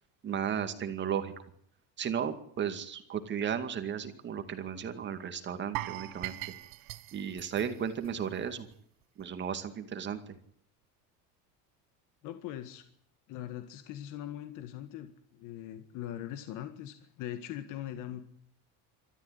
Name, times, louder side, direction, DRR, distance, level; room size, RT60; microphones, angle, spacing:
voice 1, 0.2-1.3 2.0-6.4 7.1-8.7 9.2-10.3, right 8 dB, 30° right, 8 dB, 2.2 m, -34 dB
sound 1, 5.7-8.7 9.0-9.2 9.7-9.8, right 18 dB, 70° right, 1.2 m, -41 dB
voice 2, 12.2-12.8 13.3-18.2, left 12 dB, 60° left, 9 dB, 1.8 m, -41 dB
28.0 x 13.5 x 9.7 m, 0.67 s
cardioid pair, 145°, 35 cm